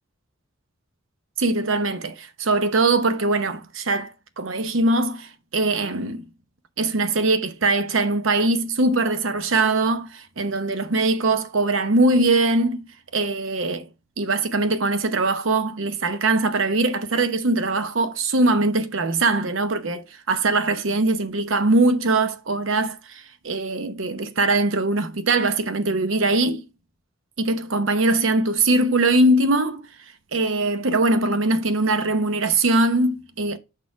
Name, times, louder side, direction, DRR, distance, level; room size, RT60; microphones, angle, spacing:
voice 1, 1.4-4.1 4.4-6.3 6.8-12.9 13.1-13.9 14.2-26.6 27.4-29.8 30.3-33.6, right 2 dB, 80° right, 0.8 m, -21 dB
5.5 x 4.3 x 4.6 m
head